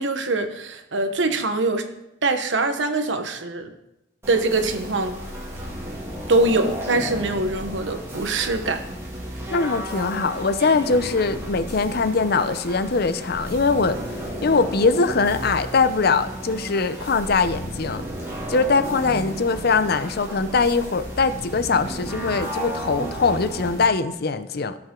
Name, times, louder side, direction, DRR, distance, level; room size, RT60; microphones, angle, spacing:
voice 1, 0.0-1.9 2.2-3.7 4.3-5.1 6.3-8.8, right 2 dB, 80° right, 7 dB, 1.1 m, -23 dB
sound 1, 4.2-23.8, equal, 15° right, 2.4 m, -33 dB
voice 2, 9.5-14.0 14.4-18.0 18.5-24.8, left 4 dB, 55° left, 12 dB, 0.6 m, -22 dB
16.5 x 6.0 x 3.8 m, 0.88 s
head